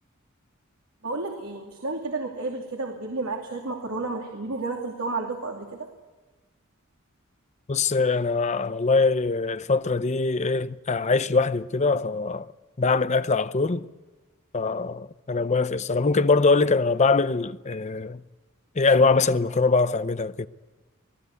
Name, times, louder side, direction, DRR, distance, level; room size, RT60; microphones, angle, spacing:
voice 1, 1.0-5.9, right 3 dB, 85° right, 2.8 m, -31 dB
voice 2, 7.7-12.5 12.8-13.9 14.5-18.2 18.8-20.5, left 4 dB, 35° left, 0.7 m, -23 dB
26.5 x 17.5 x 8.3 m
head